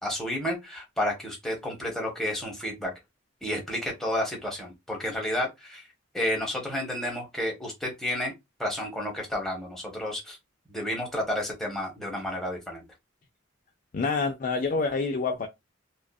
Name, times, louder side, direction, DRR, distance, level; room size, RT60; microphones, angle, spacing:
voice 1, 0.0-2.9 3.4-5.9 6.1-8.3 8.6-10.4 10.7-12.8, left 1 dB, ahead, 0.9 m, -31 dB
voice 2, 13.9-15.5, left 4 dB, 40° left, 0.3 m, -27 dB
2.6 x 2.4 x 2.2 m
head